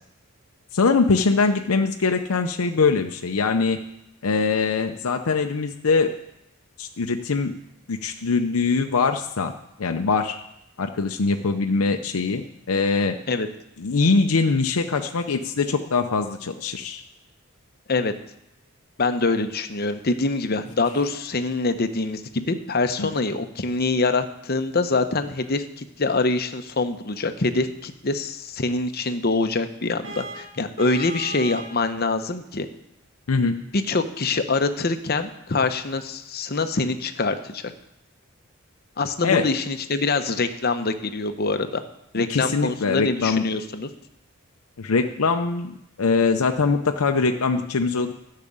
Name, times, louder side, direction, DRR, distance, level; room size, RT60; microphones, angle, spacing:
voice 1, 0.7-3.8 4.2-6.1 6.8-7.5 7.9-9.5 9.8-10.4 10.8-13.2 13.8-17.0 23.0-23.1 33.3-33.5 39.2-39.4 42.1-43.4 44.8-48.1, left 4 dB, 80° left, 5 dB, 0.7 m, -22 dB
voice 2, 19.0-32.7 33.7-37.7 39.0-41.8 42.1-43.9, left 3 dB, 45° left, 8 dB, 0.8 m, -25 dB
Vehicle horn car horn honking, 30.0-31.8, right 3 dB, 60° right, 2.2 m, -36 dB
12.0 x 6.6 x 8.7 m, 0.84 s
head